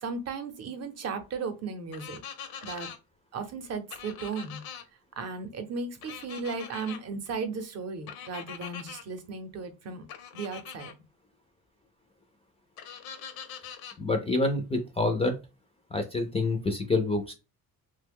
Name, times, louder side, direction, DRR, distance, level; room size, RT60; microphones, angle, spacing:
voice 1, 0.0-2.2 2.6-2.9 3.3-4.6 5.2-10.1 10.3-10.9, right 4 dB, 45° right, 8 dB, 0.7 m, -36 dB
sound 1, 1.9-3.0 3.9-4.8 6.0-7.0 8.1-9.0 10.1-10.9 12.8-14.0, left 7 dB, 80° left, 0.7 m, -42 dB
voice 2, 14.0-15.4 15.9-17.3, left 2 dB, 15° left, 5 dB, 0.3 m, -27 dB
2.8 x 2.2 x 3.5 m, 0.27 s
cardioid pair, 135°, 36 cm